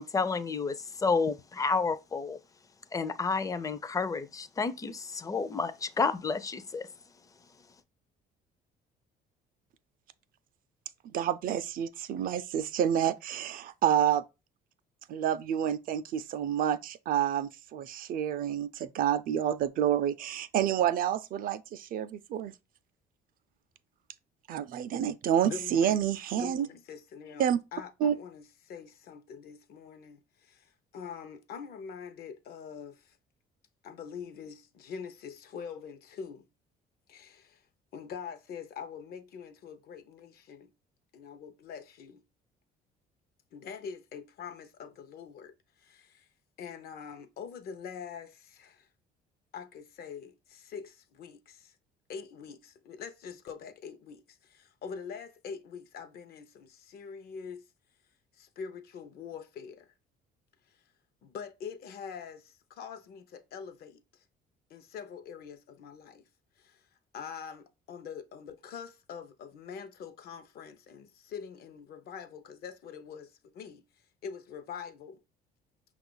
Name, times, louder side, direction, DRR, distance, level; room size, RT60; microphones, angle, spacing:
voice 1, 0.0-2.4 2.9-6.9, left 4 dB, 20° left, 0.4 m, -30 dB
voice 2, 11.0-14.2 15.1-22.5 24.5-26.7 27.4-27.6 28.0-28.2, right 9 dB, 55° right, 0.4 m, -29 dB
voice 3, 25.4-26.1 26.3-33.2 33.8-36.5 37.1-37.6 37.9-40.7 41.1-42.2 43.5-46.3 46.6-48.9 49.5-51.8 52.1-57.6 58.3-59.9 61.2-64.2 64.7-66.2 66.6-66.8 67.1-73.8 74.2-75.2, left 6 dB, 65° left, 0.7 m, -44 dB
5.5 x 2.4 x 3.8 m
cardioid pair, 110°, 17 cm